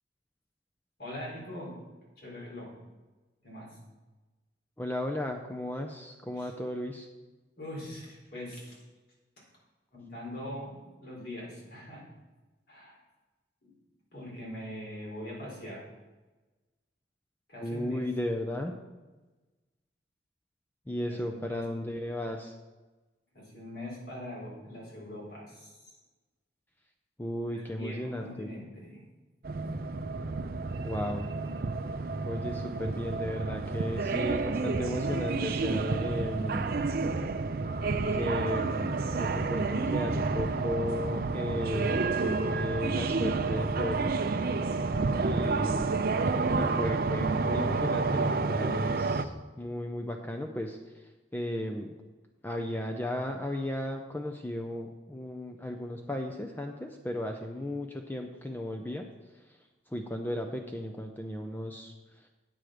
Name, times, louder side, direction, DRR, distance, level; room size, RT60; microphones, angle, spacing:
voice 1, 1.0-1.7 2.2-2.7 3.4-3.8 6.4-6.5 7.6-8.8 9.4-9.5 9.9-12.0 12.7-13.0 13.6-13.7 14.1-15.9 17.5-18.0 21.1-21.6 23.3-26.0 27.5-29.0, left 1 dB, 60° left, -4 dB, 3.8 m, -42 dB
voice 2, 4.8-7.1 17.6-18.7 20.9-22.6 27.2-28.5 30.8-31.3 32.3-36.7 38.1-44.2 45.2-46.0 46.6-49.3 49.6-52.0 52.4-62.3, left 1 dB, 10° left, 4 dB, 0.5 m, -35 dB
sound 1, 29.4-49.2, right 3 dB, 55° right, 0.5 m, -30 dB
9.2 x 7.4 x 5.0 m, 1.2 s
head